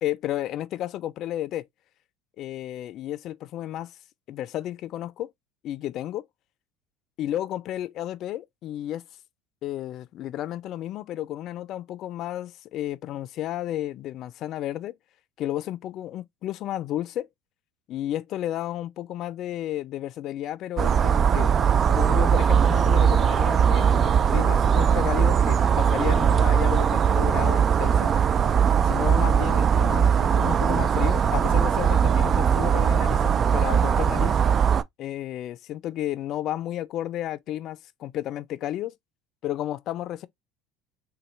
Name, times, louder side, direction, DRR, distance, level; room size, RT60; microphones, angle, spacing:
voice 1, 0.0-1.7 2.4-3.9 4.3-5.3 5.6-6.3 7.2-9.0 9.6-15.0 15.4-17.3 17.9-21.5 21.9-28.1 28.8-34.4 35.0-38.9 39.4-40.3, left 13 dB, 55° left, 0.4 m, -32 dB
sound 1, 20.8-34.8, right 7 dB, 40° right, 0.3 m, -20 dB
4.0 x 2.2 x 3.1 m
hypercardioid pair, 85°, 0 cm